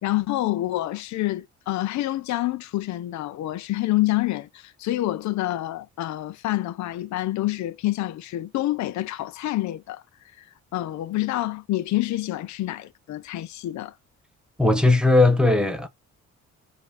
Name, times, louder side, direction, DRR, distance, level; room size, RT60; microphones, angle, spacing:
voice 1, 0.0-10.0 10.4-13.9, left 16 dB, 70° left, 0.5 m, -27 dB
voice 2, 14.6-15.9, left 2 dB, 5° right, 1.0 m, -18 dB
4.7 x 2.7 x 4.2 m
cardioid pair, 90°, 30 cm